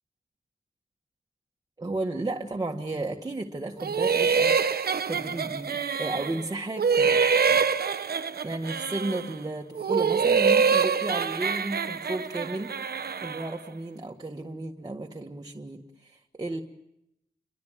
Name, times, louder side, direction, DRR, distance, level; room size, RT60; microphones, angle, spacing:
voice 1, 1.8-7.2 7.5-7.8 8.4-16.6, right 2 dB, 25° right, 1 dB, 1.8 m, -34 dB
sound 1, 3.8-6.5 6.8-9.3 9.8-13.5, right 6 dB, 75° right, 1.1 m, -25 dB
29.5 x 22.5 x 7.6 m, 0.80 s
wide cardioid pair, 145°, 16 cm